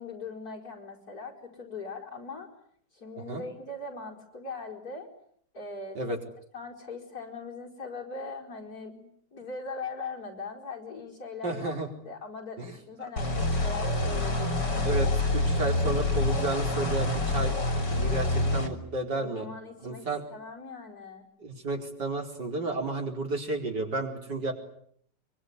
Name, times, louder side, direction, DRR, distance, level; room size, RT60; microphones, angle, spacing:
voice 1, 0.0-2.5 2.9-5.1 5.5-6.2 6.5-11.8 12.0-14.8 19.2-21.3, left 3 dB, 55° left, 0 dB, 5.5 m, -40 dB
voice 2, 11.4-11.9 12.6-12.7 14.8-15.1 15.3-17.6 17.9-19.5 19.8-20.2 21.4-24.5, right 2 dB, 70° right, 2 dB, 5.2 m, -32 dB
sound 1, 13.2-18.7, left 2 dB, 75° left, 3.9 m, -27 dB
24.0 x 24.0 x 9.7 m, 0.66 s
omnidirectional pair, 1.9 m